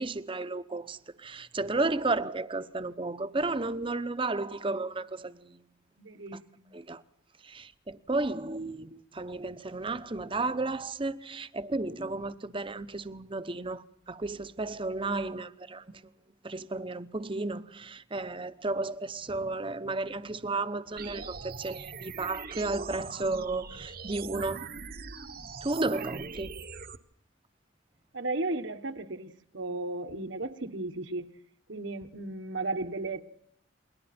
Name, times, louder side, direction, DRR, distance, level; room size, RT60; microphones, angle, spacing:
voice 1, 0.0-5.6 6.7-7.0 7.4-16.0 16.4-24.7 25.6-26.6, right 3 dB, 25° right, 0.8 m, -33 dB
voice 2, 6.0-6.8 28.1-31.4 31.7-33.2, right 2 dB, 70° right, 1.4 m, -35 dB
sound 1, 21.0-27.0, right 5 dB, 50° right, 1.1 m, -42 dB
29.5 x 22.0 x 4.4 m
head